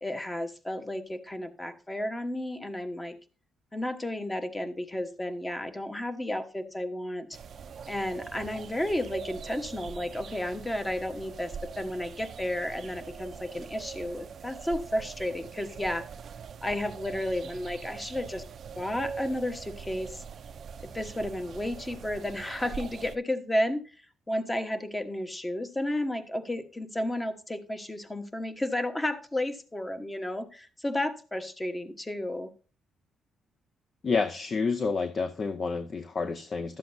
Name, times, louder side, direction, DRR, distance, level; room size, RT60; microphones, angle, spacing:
voice 1, 0.0-3.2 3.7-7.3 7.9-16.0 16.6-18.4 18.7-20.2 20.8-23.8 24.3-32.5, left 1 dB, 15° left, 1.2 m, -32 dB
sound 1, 7.3-23.2, right 6 dB, 55° right, 0.5 m, -42 dB
voice 2, 34.0-36.8, left 4 dB, 40° left, 0.7 m, -29 dB
12.0 x 7.6 x 2.7 m
cardioid pair, 90°, 0 cm